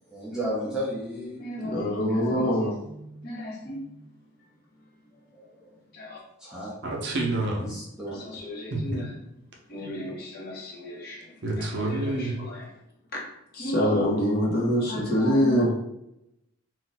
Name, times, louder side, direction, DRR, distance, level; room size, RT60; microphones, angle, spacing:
voice 1, 0.1-1.4 2.0-2.5 5.3-5.7 6.4-6.7 7.6-8.1, equal, 5° right, -7 dB, 0.4 m, -34 dB
voice 2, 1.4-3.8 5.9-6.2 8.1-9.0 9.7-11.3 11.6-12.6 13.1-13.2 13.5-15.7, equal, 45° left, -3 dB, 0.8 m, -27 dB
voice 3, 6.8-7.7 8.7-9.0 11.4-12.4, right 2 dB, 50° right, 0 dB, 0.6 m, -28 dB
2.5 x 2.1 x 3.9 m, 0.83 s
head